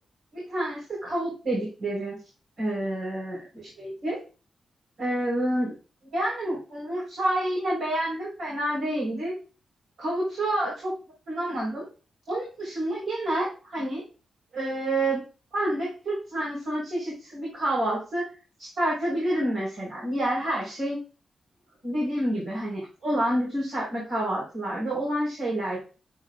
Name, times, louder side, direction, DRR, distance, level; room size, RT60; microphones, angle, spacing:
voice 1, 0.3-2.2 2.6-3.5 3.8-4.2 5.0-5.8 6.1-9.3 10.0-10.9 11.3-11.9 12.3-14.0 14.5-15.2 15.5-18.3 18.6-21.0 21.8-25.8, right 1 dB, 70° right, -4 dB, 4.2 m, -28 dB
9.4 x 8.8 x 2.4 m, 0.35 s
wide cardioid pair, 145°, 0 cm